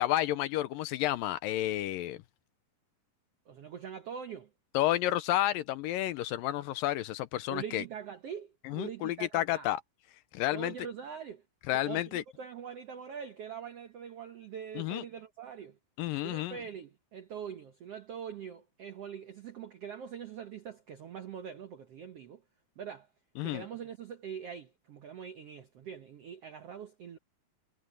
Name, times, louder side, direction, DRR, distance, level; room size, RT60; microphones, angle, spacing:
voice 1, 0.0-2.2 4.7-7.8 8.6-9.8 10.3-10.7 11.7-12.2 14.8-15.0 16.0-16.6 23.4-23.6, left 14 dB, 80° left, 2.2 m, -31 dB
voice 2, 3.5-4.5 7.5-9.7 10.5-11.4 11.7-15.8 16.2-22.4 22.8-23.1 23.4-27.2, right 7 dB, 75° right, 1.4 m, -43 dB
omnidirectional pair, 4.3 m